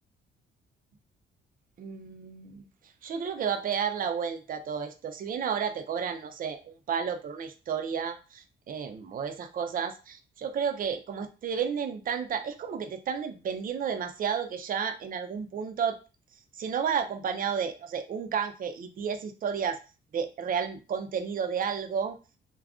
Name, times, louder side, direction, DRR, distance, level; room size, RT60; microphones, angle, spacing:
voice 1, 1.8-2.7 3.0-16.0 16.5-19.8 20.1-22.2, right 7 dB, 45° right, 7 dB, 0.5 m, -32 dB
2.4 x 2.2 x 3.5 m, 0.32 s
cardioid pair, 90°, 20 cm